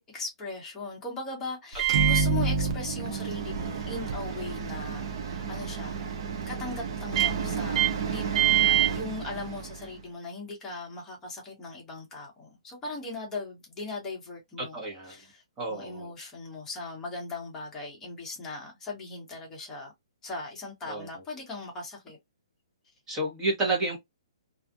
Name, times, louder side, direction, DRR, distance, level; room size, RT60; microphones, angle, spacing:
voice 1, 0.0-6.1 6.5-14.8 15.1-15.4 15.7-19.9 20.2-22.2, left 3 dB, 15° left, 1.1 m, -39 dB
Microwave oven, 1.7-9.9, right 8 dB, 45° right, 0.6 m, -27 dB
voice 2, 14.7-15.2 15.6-16.1 20.9-21.1 23.1-24.0, right 2 dB, 15° right, 1.1 m, -30 dB
2.6 x 2.4 x 2.5 m
hypercardioid pair, 155°, 3 cm